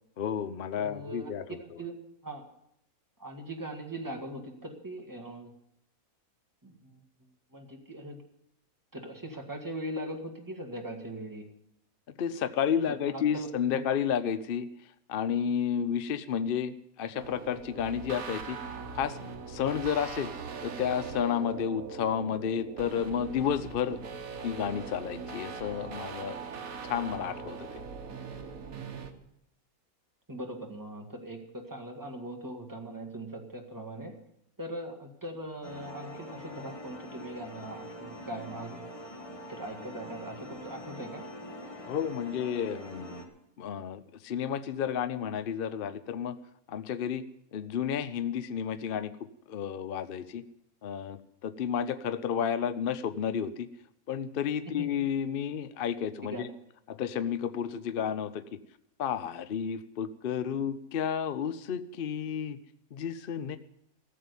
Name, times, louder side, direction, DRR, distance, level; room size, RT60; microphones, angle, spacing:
voice 1, 0.2-1.8 12.1-14.7 15.1-18.6 18.9-19.2 19.5-20.3 20.6-24.0 24.4-26.4 26.8-27.8 41.9-43.2 43.6-46.4 46.7-47.3 47.5-49.1 49.5-50.4 50.8-53.7 54.1-56.5 56.9-58.4 59.0-62.6 62.9-63.6, left 8 dB, 50° left, 13 dB, 0.7 m, -31 dB
voice 2, 0.8-2.0 2.2-2.4 3.2-5.5 6.6-8.2 8.9-11.5 13.1-13.5 30.3-34.1 34.6-38.9 39.5-41.3 54.7-54.9 56.3-56.5, right 1 dB, 15° right, 2 dB, 1.9 m, -40 dB
sound 1, 17.1-29.1, right 5 dB, 75° right, 1.6 m, -41 dB
sound 2, 35.6-43.2, left 1 dB, 25° left, 1.7 m, -44 dB
15.0 x 7.7 x 9.5 m, 0.77 s
omnidirectional pair, 1.5 m